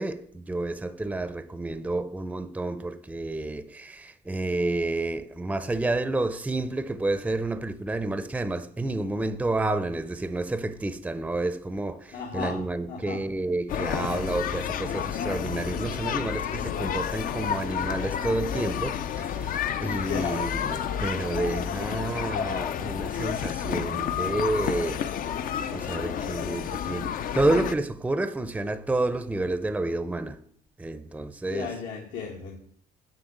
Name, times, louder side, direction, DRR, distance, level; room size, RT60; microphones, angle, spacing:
voice 1, 0.0-25.2 25.7-30.4 30.8-31.8, right 2 dB, 10° right, 0.6 m, -30 dB
voice 2, 12.1-12.6 12.9-13.2 20.1-20.4 31.5-32.6, left 6 dB, 85° left, 1.9 m, -34 dB
sound 1, 13.7-27.7, left 9 dB, 55° left, 0.5 m, -30 dB
8.0 x 5.7 x 7.7 m
cardioid pair, 110°, 17 cm